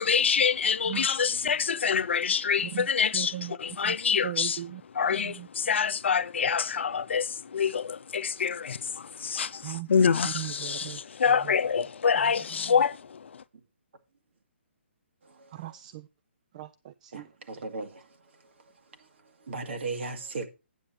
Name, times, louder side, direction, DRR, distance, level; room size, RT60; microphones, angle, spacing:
voice 1, 0.0-4.6 4.9-13.4, left 6 dB, 65° left, 0.6 m, -26 dB
voice 2, 3.1-3.6 3.8-4.0 4.2-4.8 5.1-5.5 9.6-9.9 10.2-11.0 11.3-11.5 12.7-12.8 15.5-16.1 16.5-17.3, right 13 dB, 35° right, 0.4 m, -38 dB
voice 3, 17.1-18.0 19.5-20.5, right 3 dB, 65° right, 2.0 m, -36 dB
9.1 x 7.1 x 4.4 m
hypercardioid pair, 145°, 7 cm